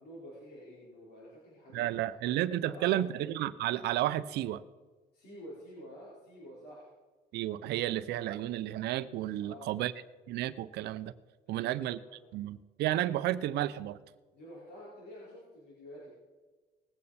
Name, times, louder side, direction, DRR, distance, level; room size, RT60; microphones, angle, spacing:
voice 1, 0.0-1.9 2.3-3.1 5.1-6.9 9.4-9.8 11.5-12.4 14.3-16.1, equal, 70° left, -7 dB, 4.7 m, -50 dB
voice 2, 1.7-4.6 7.3-9.9 10.3-11.1 11.5-12.0 12.3-14.0, right 13 dB, 80° right, 15 dB, 0.6 m, -32 dB
19.5 x 8.7 x 4.2 m, 1.3 s
cardioid pair, 110°, 17 cm